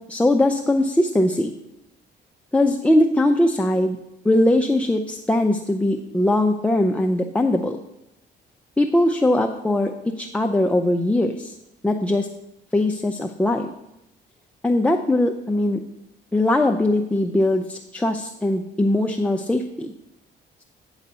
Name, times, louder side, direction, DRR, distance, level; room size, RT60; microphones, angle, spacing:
voice 1, 0.1-1.5 2.5-4.0 4.2-7.8 8.8-11.6 11.8-12.3 12.7-13.7 14.6-15.8 16.3-19.9, left 1 dB, 5° left, 4 dB, 0.5 m, -20 dB
9.4 x 4.0 x 6.8 m, 0.87 s
cardioid pair, 90°, 20 cm